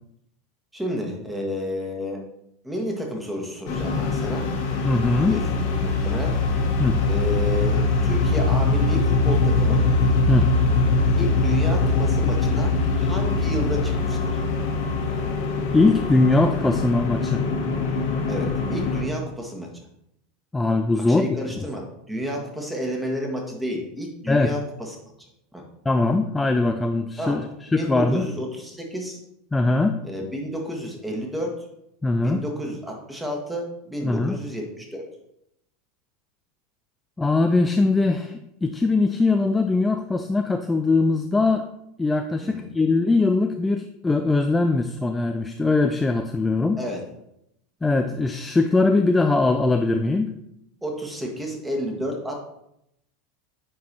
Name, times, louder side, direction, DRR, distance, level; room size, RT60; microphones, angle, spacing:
voice 1, 0.7-2.2 2.6-4.6 5.1-6.4 7.0-9.8 11.2-14.4 18.3-19.7 20.9-24.6 24.9-25.0 25.5-25.6 27.2-27.4 27.8-29.2 30.0-31.6 32.2-35.0 42.4-42.7 46.8-47.0 50.8-52.4, equal, 10° right, 0 dB, 1.7 m, -31 dB
sound 1, 3.7-19.0, left 3 dB, 60° left, 1.3 m, -22 dB
voice 2, 4.8-5.4 6.8-7.0 10.3-10.5 15.7-17.4 20.5-21.3 24.3-24.5 25.9-27.5 27.7-28.3 29.5-30.0 32.0-32.4 34.0-34.4 37.2-41.7 42.0-46.8 47.8-50.3, left 3 dB, 10° left, 6 dB, 0.4 m, -21 dB
9.4 x 4.6 x 2.9 m, 0.79 s
figure-of-eight pair, 85°, 0 cm